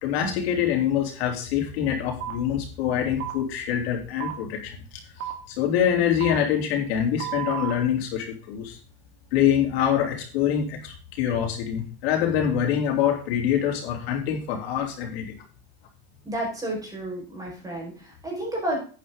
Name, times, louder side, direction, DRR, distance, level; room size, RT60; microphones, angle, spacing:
voice 1, 0.0-4.8 5.5-8.8 9.3-15.3, left 9 dB, 90° left, 1 dB, 3.5 m, -25 dB
sound 1, 2.2-2.3 3.2-3.3 4.2-4.3 5.2-5.3 6.2-6.3 7.2-7.7, right 12 dB, 50° right, 2.0 m, -31 dB
voice 2, 16.2-18.8, right 1 dB, 10° right, -2 dB, 5.1 m, -31 dB
10.0 x 9.2 x 3.8 m, 0.39 s
supercardioid pair, 150°, 30 cm